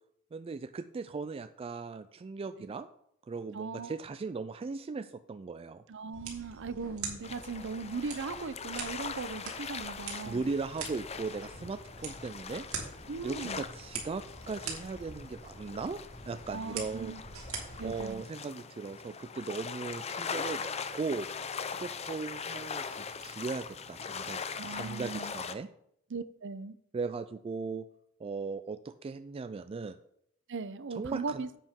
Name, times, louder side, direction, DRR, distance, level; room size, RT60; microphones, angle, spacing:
voice 1, 0.3-2.9 3.2-5.8 10.2-12.7 13.2-16.0 16.3-17.1 17.8-21.3 21.7-24.4 24.7-25.7 26.9-27.9 28.2-30.0 30.9-31.5, right 4 dB, 25° right, 0.3 m, -38 dB
voice 2, 3.5-3.9 5.9-10.5 13.1-13.6 16.5-17.2 17.8-18.2 24.6-25.3 26.1-26.7 30.5-31.5, right 4 dB, 60° right, 0.6 m, -38 dB
sound 1, 6.1-18.1, right 5 dB, 90° right, 2.6 m, -44 dB
sound 2, 7.2-25.6, left 6 dB, 30° left, 0.5 m, -41 dB
sound 3, 10.6-25.4, right 1 dB, 60° left, 3.5 m, -58 dB
10.0 x 8.1 x 3.7 m
head